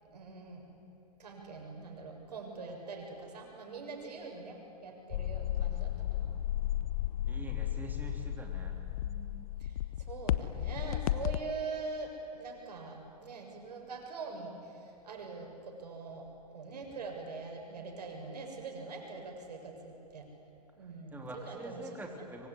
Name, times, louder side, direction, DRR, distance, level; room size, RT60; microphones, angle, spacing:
voice 1, 0.1-0.6 1.2-6.3 9.0-9.3 10.1-14.5 15.0-16.2 16.5-20.3 20.8-21.8, right 4 dB, 75° right, 2 dB, 7.1 m, -43 dB
sound 1, 5.1-11.4, left 12 dB, 60° left, 1.0 m, -34 dB
voice 2, 7.3-8.8 21.1-22.5, right 1 dB, 10° right, 1 dB, 3.5 m, -44 dB
25.5 x 24.0 x 9.8 m, 2.9 s
hypercardioid pair, 115°, 21 cm